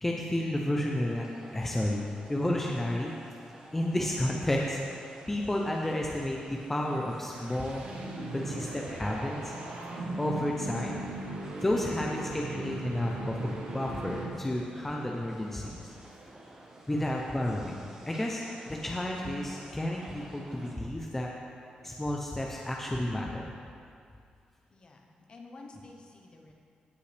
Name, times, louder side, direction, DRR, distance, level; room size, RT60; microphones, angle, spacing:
voice 1, 0.0-1.3 1.5-2.0 2.3-3.1 3.7-4.8 5.3-7.9 8.3-9.5 10.2-11.0 11.6-15.9 16.9-21.3 21.8-23.5, left 1 dB, 10° left, -1 dB, 0.5 m, -31 dB
sound 1, 1.0-20.7, right 1 dB, 25° right, 1.0 m, -52 dB
sound 2, 7.0-14.7, right 2 dB, 75° right, 1.2 m, -39 dB
voice 2, 24.7-25.0 25.3-26.5, left 3 dB, 35° left, 1 dB, 0.9 m, -50 dB
16.0 x 5.5 x 3.3 m, 2.3 s
wide cardioid pair, 170°, 3 cm